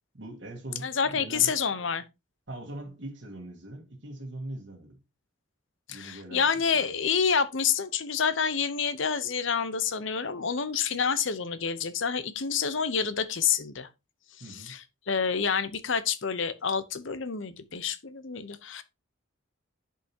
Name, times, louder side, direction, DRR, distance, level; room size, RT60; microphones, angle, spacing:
voice 1, 0.1-1.6 2.5-5.0 5.9-6.9 14.4-14.8, right 1 dB, 60° right, 1.5 m, -42 dB
voice 2, 0.8-2.0 5.9-13.9 14.4-18.8, left 6 dB, 70° left, 0.8 m, -28 dB
10.0 x 5.6 x 2.8 m
head